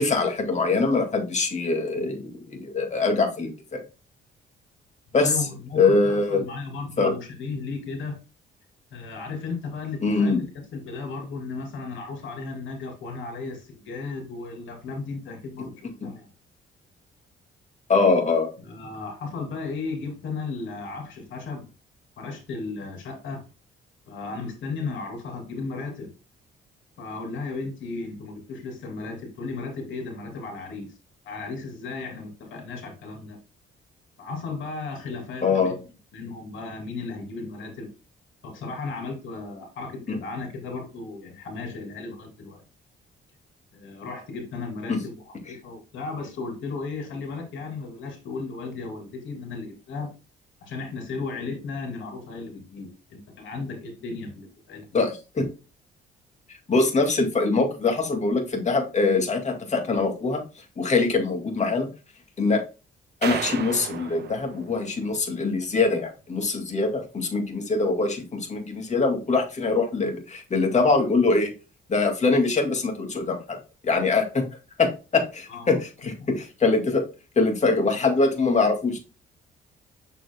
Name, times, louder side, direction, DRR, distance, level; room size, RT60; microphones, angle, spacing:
voice 1, 0.0-3.8 5.1-5.3 5.8-6.4 7.0-7.1 10.0-10.4 15.6-15.7 16.0-16.1 17.9-18.5 35.4-35.8 40.1-40.2 44.9-45.0 54.9-55.5 56.7-60.4 60.8-61.9 62.4-62.6 63.2-71.5 71.9-73.6 73.8-74.5 74.8-77.0 77.4-79.0, left 3 dB, 35° left, 2.2 m, -23 dB
voice 2, 5.2-8.2 8.9-16.3 18.6-21.7 22.2-23.4 24.1-26.1 27.0-30.9 31.2-33.4 34.2-35.8 36.1-37.9 38.4-42.6 43.7-50.1 50.6-54.8 75.5-75.8 76.2-76.3, left 4 dB, 75° left, 3.1 m, -35 dB
sound 1, 63.2-65.5, right 9 dB, 55° right, 0.7 m, -34 dB
7.1 x 6.1 x 2.2 m
cardioid pair, 90°, 20 cm